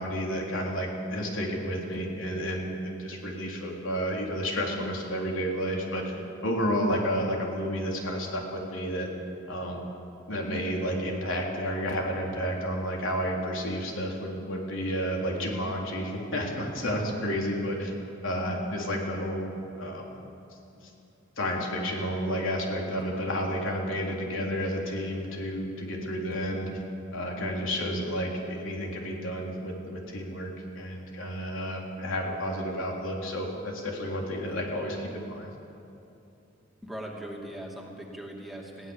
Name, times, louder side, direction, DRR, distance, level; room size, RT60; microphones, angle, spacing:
voice 1, 0.0-6.2 6.4-9.1 9.5-9.9 10.3-17.9 18.2-20.1 21.4-26.7 27.1-35.5, equal, 80° left, -1 dB, 3.7 m, -31 dB
voice 2, 36.8-38.9, right 1 dB, ahead, -2 dB, 2.4 m, -40 dB
21.5 x 16.5 x 7.2 m, 2.8 s
head